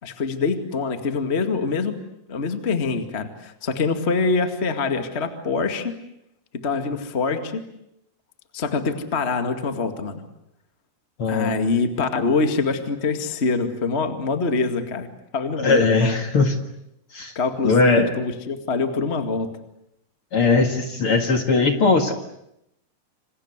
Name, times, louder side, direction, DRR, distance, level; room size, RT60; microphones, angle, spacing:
voice 1, 0.0-2.0 2.3-6.0 6.5-7.6 8.5-10.2 11.3-15.1 15.3-16.2 17.3-19.5, left 4 dB, 25° left, 8 dB, 1.4 m, -24 dB
voice 2, 11.2-11.6 15.6-16.5 17.1-17.3 17.6-18.1 20.3-22.1, left 3 dB, 45° left, 6 dB, 2.2 m, -19 dB
27.5 x 26.5 x 8.1 m, 0.79 s
omnidirectional pair, 4.3 m